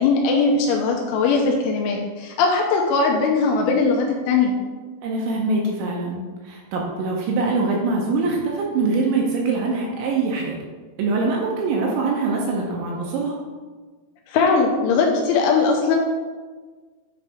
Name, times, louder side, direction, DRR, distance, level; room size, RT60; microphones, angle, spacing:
voice 1, 0.0-4.5 14.3-16.0, left 4 dB, 80° left, 0 dB, 3.0 m, -20 dB
voice 2, 5.0-10.6 11.0-13.3, right 3 dB, 80° right, -1 dB, 2.9 m, -23 dB
9.5 x 3.2 x 4.9 m, 1.4 s
omnidirectional pair, 5.9 m